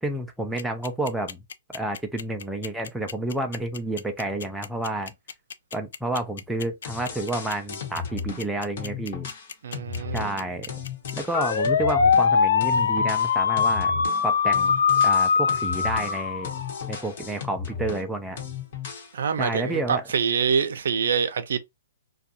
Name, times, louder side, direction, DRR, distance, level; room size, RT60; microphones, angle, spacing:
voice 1, 0.0-1.4 1.7-5.1 5.7-9.3 10.1-10.7 11.1-14.7 15.0-16.5 16.9-18.4 19.4-20.0, right 1 dB, ahead, 0.3 m, -30 dB
sound 1, 0.6-17.0, left 6 dB, 75° left, 0.3 m, -23 dB
Retro Pop Beat, 6.8-8.5 8.8-12.3 12.6-18.1 18.4-19.1, left 6 dB, 50° left, 1.0 m, -35 dB
voice 2, 9.6-10.3 19.1-21.6, right 6 dB, 75° right, 0.5 m, -25 dB
2.4 x 2.2 x 2.7 m
hypercardioid pair, 155°, 0 cm